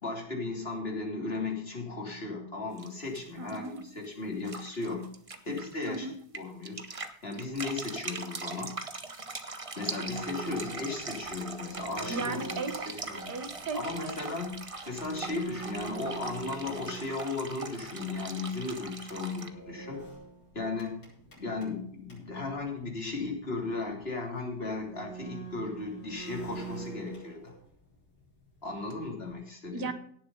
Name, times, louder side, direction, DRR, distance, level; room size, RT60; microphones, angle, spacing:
voice 1, 0.0-5.1 5.4-6.1 6.3-6.8 7.2-8.7 9.8-12.6 13.0-13.3 13.7-14.6 14.9-20.1 20.5-21.0 21.4-27.5 28.6-29.9, left 3 dB, 35° left, 1 dB, 3.3 m, -36 dB
sound 1, 2.8-2.9 3.2-4.1 4.5-6.0 6.3-19.5, right 3 dB, 30° right, 0.7 m, -41 dB
voice 2, 3.4-3.8 5.9-6.2 12.1-14.2 19.8-19.9 29.7-29.9, right 4 dB, 75° right, 9 dB, 2.0 m, -37 dB
sound 2, 10.1-17.9 19.4-22.4 22.8-22.9 23.2-23.3 24.0-24.1 24.7-27.9 28.2-29.3, right 4 dB, 80° left, 6.9 m, -44 dB
17.5 x 7.0 x 5.5 m, 0.62 s
omnidirectional pair, 1.8 m